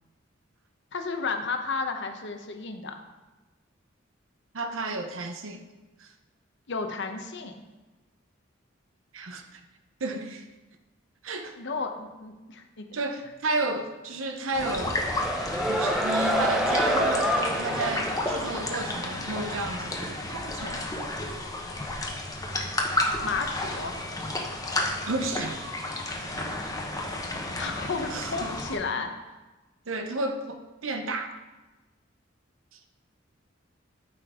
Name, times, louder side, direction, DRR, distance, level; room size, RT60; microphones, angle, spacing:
voice 1, 0.9-3.0 6.7-7.6 11.6-12.9 23.2-24.0 27.5-29.1, left 4 dB, 65° left, 5 dB, 0.9 m, -32 dB
voice 2, 4.5-5.6 6.0-6.1 9.1-9.6 10.0-10.4 11.2-11.5 12.9-15.0 15.6-20.9 24.6-24.8 25.1-25.6 28.1-28.5 29.9-31.3 32.7-32.8, right 2 dB, 85° right, 6 dB, 0.8 m, -32 dB
sound 1, 14.5-28.8, left 1 dB, 20° left, 1.0 m, -32 dB
sound 2, 14.6-19.1, equal, 5° right, 0.7 m, -28 dB
13.0 x 5.3 x 3.7 m, 1.2 s
head